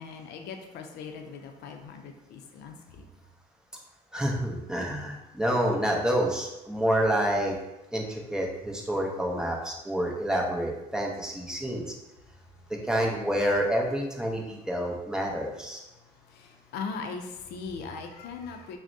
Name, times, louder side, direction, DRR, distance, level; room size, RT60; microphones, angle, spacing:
voice 1, 0.0-3.0 12.5-12.6 16.0-18.8, left 5 dB, 75° left, 5 dB, 0.5 m, -40 dB
voice 2, 4.1-7.5 7.9-11.8 12.8-15.8, equal, 5° right, -1 dB, 0.7 m, -28 dB
5.9 x 2.1 x 2.7 m, 0.96 s
cardioid pair, 110°, 17 cm